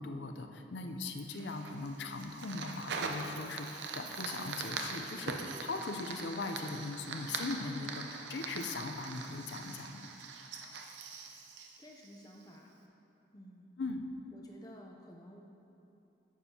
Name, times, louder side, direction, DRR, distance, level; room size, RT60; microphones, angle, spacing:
voice 1, 0.0-10.1 13.8-14.1, left 3 dB, 75° left, 6 dB, 0.5 m, -40 dB
Fire, 1.2-12.6, right 4 dB, 75° right, 0.6 m, -42 dB
voice 2, 11.8-12.9 13.3-13.7 14.3-15.4, equal, 20° left, 0 dB, 0.6 m, -53 dB
10.0 x 7.3 x 2.8 m, 2.9 s
head